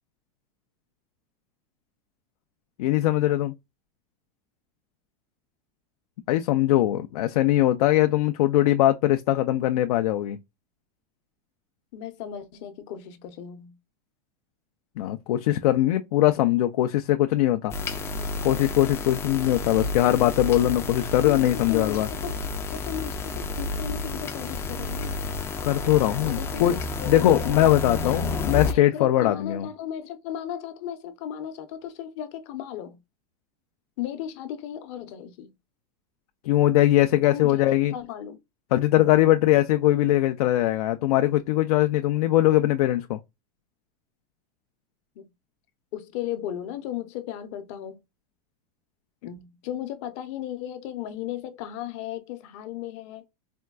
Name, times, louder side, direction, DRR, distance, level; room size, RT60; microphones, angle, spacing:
voice 1, 2.8-3.5 6.3-10.4 15.0-17.7 18.4-22.1 25.6-26.8 27.1-29.7 36.4-37.9 38.7-43.2, left 14 dB, 80° left, 0.4 m, -21 dB
voice 2, 11.9-13.8 21.2-22.4 22.7-25.1 26.2-27.7 28.0-28.2 28.6-33.0 34.0-35.5 37.2-37.6 37.9-38.4 45.2-45.3 45.9-48.0 49.2-53.3, left 10 dB, 50° left, 0.7 m, -36 dB
sound 1, 17.7-28.7, left 3 dB, 15° left, 0.3 m, -31 dB
4.4 x 2.2 x 2.3 m
supercardioid pair, 150°, 19 cm